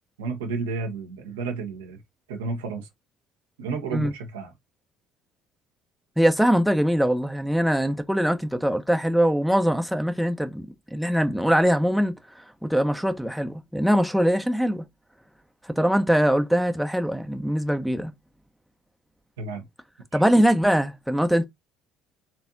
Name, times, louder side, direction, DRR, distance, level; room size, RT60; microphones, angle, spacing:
voice 1, 0.2-2.0 2.3-2.9 3.6-4.5 19.4-19.6 20.1-20.2, right 4 dB, 80° right, 1.0 m, -31 dB
voice 2, 6.2-10.6 10.9-12.1 12.6-14.9 15.8-18.1 20.1-21.4, equal, ahead, 0.9 m, -22 dB
4.2 x 3.4 x 2.6 m
hypercardioid pair, 55°, 0 cm